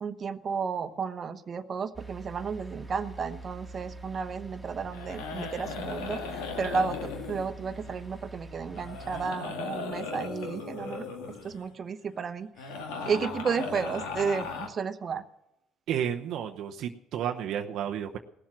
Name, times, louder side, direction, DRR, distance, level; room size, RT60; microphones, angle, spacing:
voice 1, 0.0-11.0 11.4-12.5 13.1-15.2, right 5 dB, 40° right, 9 dB, 1.1 m, -33 dB
sound 1, 1.9-9.3, right 2 dB, ahead, 2.6 m, -45 dB
sound 2, 4.9-8.4 8.7-11.7 12.6-14.7, left 4 dB, 85° left, 1.9 m, -37 dB
voice 2, 15.9-18.2, right 9 dB, 65° right, 4 dB, 0.8 m, -32 dB
18.0 x 7.4 x 7.5 m, 0.88 s
supercardioid pair, 75°, 0 cm